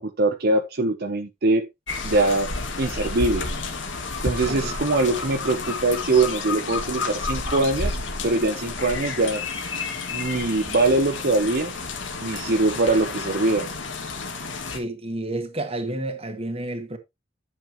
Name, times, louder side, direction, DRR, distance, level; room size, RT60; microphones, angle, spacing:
voice 1, 0.0-1.7 2.0-3.5 4.2-8.0 8.2-9.4 10.1-11.7 12.2-13.7, right 2 dB, 55° right, 0.8 m, -22 dB
sound 1, 1.9-14.8, left 4 dB, 85° left, 2.2 m, -31 dB
voice 2, 14.7-17.0, right 1 dB, 30° right, 1.6 m, -30 dB
10.5 x 7.0 x 3.1 m
head